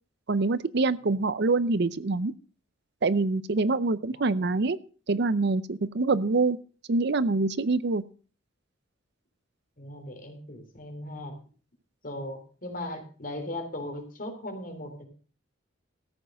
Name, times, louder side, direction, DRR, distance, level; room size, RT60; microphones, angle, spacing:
voice 1, 0.3-2.3 3.0-4.8 5.1-6.6 6.9-8.1, right 3 dB, 55° right, 17 dB, 0.6 m, -25 dB
voice 2, 9.8-11.3 12.0-15.1, left 1 dB, 45° left, 4 dB, 3.5 m, -38 dB
14.0 x 8.0 x 6.2 m, 0.38 s
head